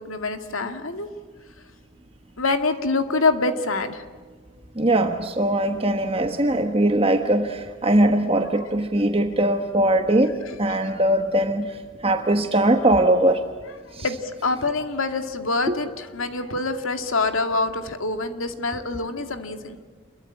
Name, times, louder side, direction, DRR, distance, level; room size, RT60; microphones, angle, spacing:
voice 1, 0.1-1.1 2.4-4.0 14.0-14.2 14.4-19.8, left 3 dB, 80° left, 7 dB, 2.3 m, -25 dB
voice 2, 4.8-13.4 13.9-14.1 15.7-15.8, right 1 dB, 25° right, 6 dB, 1.2 m, -21 dB
28.0 x 22.5 x 8.8 m, 1.4 s
head